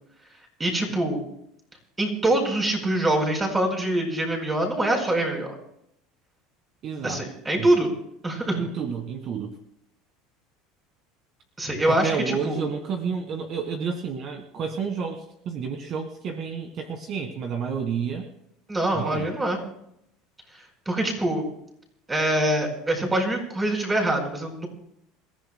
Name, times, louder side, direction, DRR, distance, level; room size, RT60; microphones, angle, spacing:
voice 1, 0.6-1.2 2.0-5.5 7.0-7.9 8.2-8.6 11.6-12.2 12.4-12.6 18.7-19.6 20.8-21.4 22.1-24.7, right 1 dB, 15° right, 2 dB, 4.8 m, -24 dB
voice 2, 6.8-7.3 7.6-7.7 8.5-9.5 11.9-18.3 18.9-19.3, right 6 dB, 45° right, 5 dB, 1.6 m, -30 dB
28.0 x 15.0 x 2.2 m, 0.76 s
supercardioid pair, 135°, 0 cm